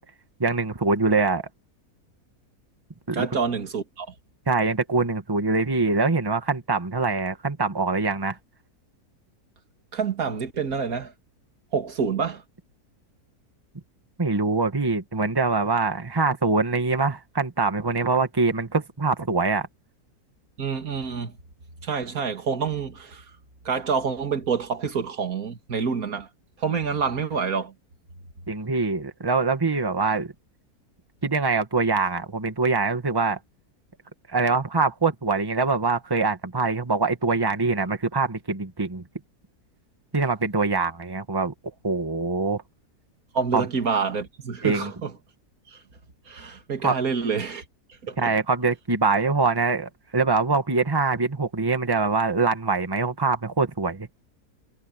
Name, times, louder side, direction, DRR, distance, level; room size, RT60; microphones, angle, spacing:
voice 1, 0.4-1.4 3.1-3.3 4.5-8.4 14.2-19.7 28.5-30.3 31.2-33.4 34.3-39.0 40.1-41.5 41.8-42.6 43.5-43.6 44.6-44.9 46.8-46.9 48.2-54.1, right 4 dB, 15° right, 1.5 m, -24 dB
voice 2, 3.1-4.1 9.9-11.1 11.7-12.4 20.6-21.3 21.8-23.2 23.6-26.3 26.6-27.7 43.3-45.1 45.7-45.8 46.3-47.6 48.0-48.3, right 6 dB, 65° right, 2.6 m, -27 dB
omnidirectional pair, 1.7 m